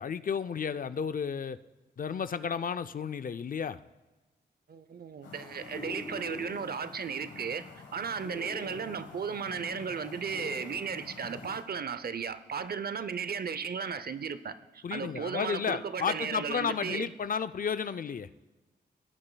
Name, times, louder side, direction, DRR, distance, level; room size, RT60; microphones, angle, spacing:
voice 1, 0.0-1.6 2.0-3.8 14.8-18.3, left 6 dB, 50° left, 13 dB, 0.5 m, -32 dB
voice 2, 4.7-17.1, right 6 dB, 60° right, 13 dB, 0.6 m, -35 dB
sound 1, 5.2-11.6, left 3 dB, 90° left, 1.3 m, -45 dB
18.0 x 8.6 x 2.3 m, 1.2 s
cardioid pair, 60°, 18 cm